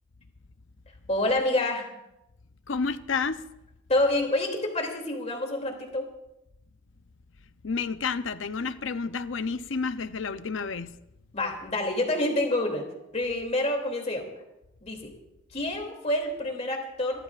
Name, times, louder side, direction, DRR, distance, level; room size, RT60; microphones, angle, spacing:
voice 1, 1.1-1.9 3.9-6.1 11.3-12.8 13.1-14.2 14.8-15.1 15.5-17.2, left 1 dB, 35° left, 2 dB, 2.8 m, -27 dB
voice 2, 2.7-3.4 7.6-10.9, left 5 dB, 75° left, 11 dB, 0.7 m, -30 dB
28.5 x 13.5 x 2.5 m, 0.89 s
head